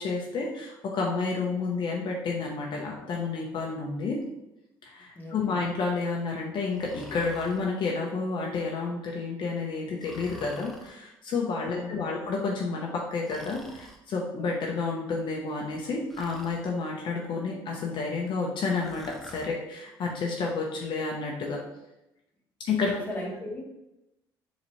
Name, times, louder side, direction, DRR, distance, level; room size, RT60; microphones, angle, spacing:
voice 1, 0.0-4.2 4.8-21.6 22.7-22.9, left 4 dB, 55° left, -1 dB, 0.8 m, -30 dB
voice 2, 5.1-5.7 11.7-12.3 22.9-23.6, left 1 dB, 20° left, -3 dB, 1.4 m, -38 dB
Breathing, 6.7-7.6 10.0-11.0 13.2-14.0 16.1-16.6 18.8-19.5, equal, ahead, 0.7 m, -47 dB
4.2 x 4.0 x 3.0 m, 0.90 s
cardioid pair, 90°, 10 cm